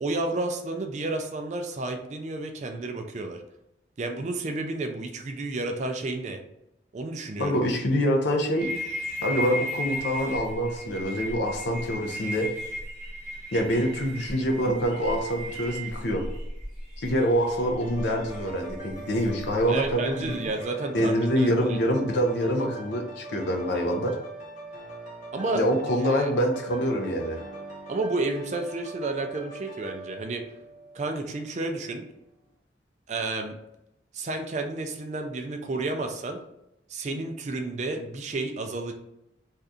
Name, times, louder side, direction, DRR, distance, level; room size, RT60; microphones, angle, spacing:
voice 1, 0.0-3.4 4.0-6.4 6.9-7.6 19.7-21.8 25.3-25.6 26.1-26.3 27.9-30.4 30.9-32.0 33.1-33.5 34.1-36.4 36.9-38.9, right 2 dB, 40° right, 5 dB, 0.3 m, -31 dB
voice 2, 7.4-8.7 9.2-12.5 13.5-16.2 17.0-20.4 20.9-24.2 25.5-27.4, equal, 75° left, 2 dB, 0.6 m, -25 dB
sound 1, 8.6-20.7, equal, 5° right, 0.9 m, -36 dB
sound 2, 17.8-31.5 31.9-32.1, right 2 dB, 40° left, 0.7 m, -42 dB
2.7 x 2.4 x 3.4 m, 0.86 s
head